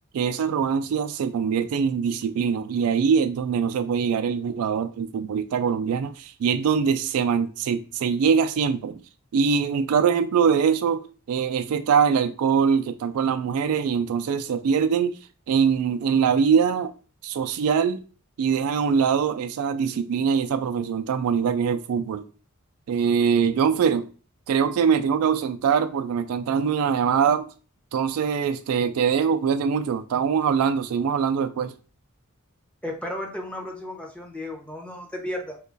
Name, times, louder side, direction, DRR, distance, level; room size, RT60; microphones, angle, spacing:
voice 1, 0.1-9.0 9.3-15.2 15.5-16.9 17.2-18.0 18.4-22.3 22.9-24.1 24.5-27.5 27.9-31.7, right 6 dB, 70° right, 0.3 m, -23 dB
voice 2, 32.8-35.6, left 1 dB, 5° left, 0.7 m, -34 dB
2.9 x 2.3 x 3.9 m
head